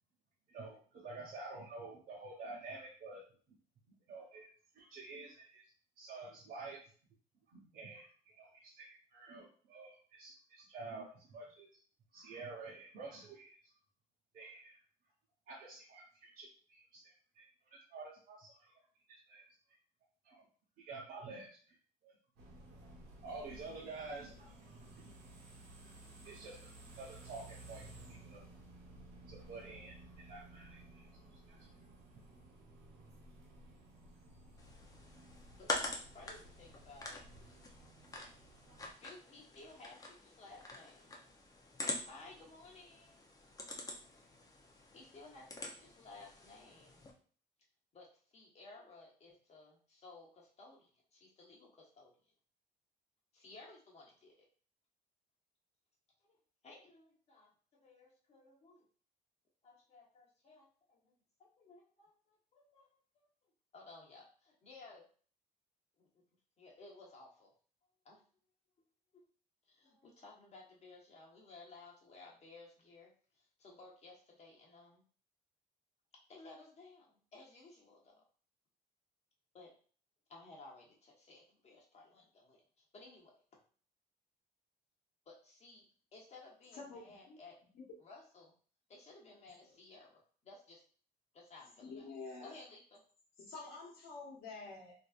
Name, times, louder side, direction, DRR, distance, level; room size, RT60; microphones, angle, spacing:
voice 1, 0.5-3.2 4.1-4.5 4.7-5.6 6.0-6.8 7.5-11.8 12.1-13.6 14.3-14.7 15.5-17.5 17.7-18.8 19.1-19.5 20.2-20.4 20.8-21.8 22.0-22.2 23.2-24.5 24.9-25.1 25.8-25.9 26.2-26.7 27.0-28.5 28.9-31.1 31.5-31.7, right 3 dB, 60° right, -5 dB, 0.9 m, -50 dB
sound 1, 22.4-38.9, right 2 dB, 85° right, 1.1 m, -56 dB
sound 2, 34.6-47.1, left 2 dB, 20° left, 0.6 m, -46 dB
voice 2, 35.6-37.2 39.0-41.1 42.1-43.3 44.9-47.0 47.9-52.1 53.3-54.4 56.2-56.4 56.6-58.9 59.6-61.1 61.4-63.0 63.7-65.1 66.0-66.2 66.6-67.5 68.0-68.2 69.1-69.3 69.7-73.1 73.4-75.0 76.3-78.2 79.5-79.7 80.3-83.6 85.3-85.8 86.1-87.6 88.0-88.5 88.9-90.8 91.3-92.1 92.4-93.0, left 3 dB, 40° left, -2 dB, 1.1 m, -57 dB
voice 3, 86.7-87.4 87.7-87.8 89.6-89.8 91.8-92.5 93.4-94.9, left 4 dB, 65° left, -3 dB, 1.2 m, -48 dB
3.3 x 2.7 x 2.4 m, 0.43 s
cardioid pair, 110°, 17 cm